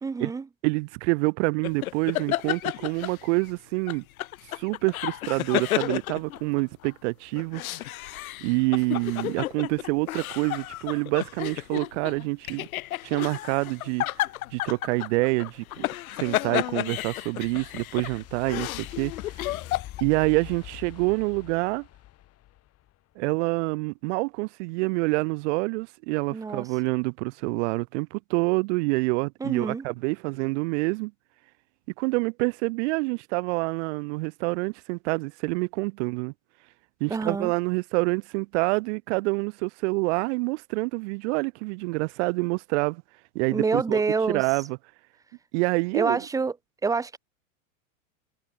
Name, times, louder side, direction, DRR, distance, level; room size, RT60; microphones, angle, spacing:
voice 1, 0.0-0.4 26.3-26.7 29.4-29.8 37.1-37.5 43.5-44.4 45.9-46.6 46.8-47.2, right 4 dB, 10° right, 0.6 m, -27 dB
voice 2, 0.6-4.0 4.5-7.6 8.4-12.7 13.0-14.0 14.5-15.8 16.2-19.1 20.0-21.9 23.1-31.1 32.0-36.3 37.0-43.0 43.3-44.0 44.3-44.8 45.5-46.2, right 27 dB, 55° right, 1.5 m, -27 dB
sound 1, 1.6-3.5 3.9-6.9 7.4-20.0, left 15 dB, 85° left, 1.1 m, -32 dB
sound 2, 16.2-23.0, left 14 dB, 35° left, 4.2 m, -45 dB
supercardioid pair, 130°, 41 cm